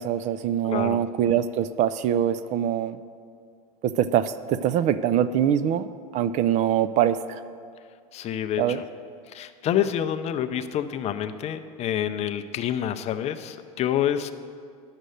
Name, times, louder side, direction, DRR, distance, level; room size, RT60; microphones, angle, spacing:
voice 1, 0.0-3.0 3.8-5.9 6.1-7.4 8.6-8.8, right 10 dB, 40° right, 14 dB, 0.4 m, -23 dB
voice 2, 0.6-1.0 8.1-8.8 9.3-14.3, left 10 dB, 35° left, 9 dB, 0.5 m, -27 dB
10.0 x 6.6 x 6.4 m, 2.2 s
supercardioid pair, 110°, 19 cm